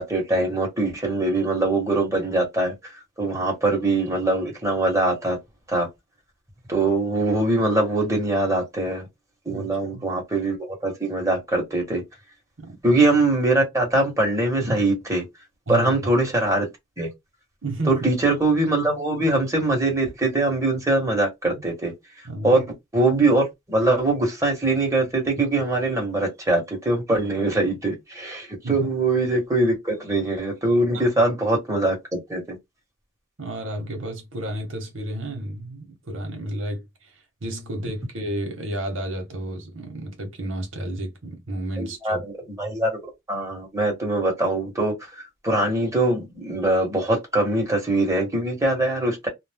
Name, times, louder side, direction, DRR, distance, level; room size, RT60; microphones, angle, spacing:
voice 1, 0.0-2.7 3.2-5.4 5.7-5.9 6.7-9.1 9.5-12.0 12.8-15.2 15.7-16.7 17.0-17.1 17.9-21.9 22.4-22.6 22.9-32.6 41.8-42.3 42.6-43.0 43.3-49.3, right 2 dB, 15° right, 1.3 m, -22 dB
voice 2, 9.5-10.1 12.6-12.8 15.7-15.9 17.6-18.1 22.2-22.6 28.6-28.9 30.9-31.0 33.4-42.3, right 1 dB, 80° right, 1.0 m, -32 dB
2.5 x 2.0 x 3.4 m
head